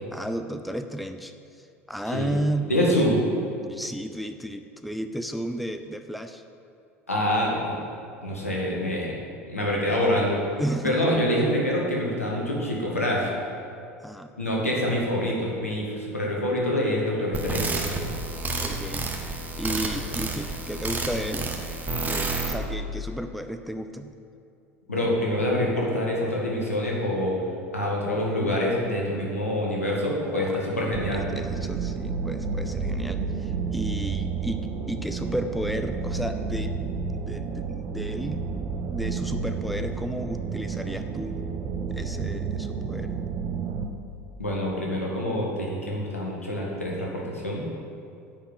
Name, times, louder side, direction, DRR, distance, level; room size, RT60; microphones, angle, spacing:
voice 1, 0.1-3.1 3.6-6.4 10.6-11.1 14.0-14.3 18.6-19.1 19.6-21.5 22.0-24.1 30.2-30.6 31.1-36.8 37.1-38.4 38.9-41.4 41.9-43.2, equal, ahead, 7 dB, 0.5 m, -33 dB
voice 2, 2.7-3.2 7.1-7.8 8.2-9.2 9.5-10.4 10.8-13.3 14.4-17.8 24.9-27.4 27.7-31.2 44.4-47.6, left 1 dB, 85° left, -3 dB, 2.0 m, -26 dB
sound 1, 17.3-22.5, right 3 dB, 20° right, 1.5 m, -30 dB
sound 2, 30.9-43.9, right 5 dB, 40° right, 0.9 m, -31 dB
10.0 x 5.6 x 8.3 m, 2.5 s
figure-of-eight pair, 70°, 7 cm